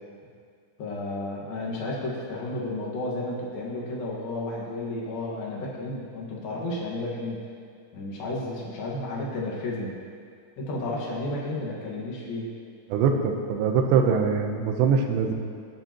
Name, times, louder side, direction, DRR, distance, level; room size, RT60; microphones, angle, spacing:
voice 1, 0.8-7.4 7.9-10.0 10.6-12.5, left 2 dB, 60° left, -4 dB, 2.9 m, -32 dB
voice 2, 12.9-15.3, right 6 dB, 75° right, 4 dB, 2.8 m, -23 dB
18.5 x 10.0 x 3.0 m, 2.3 s
omnidirectional pair, 5.7 m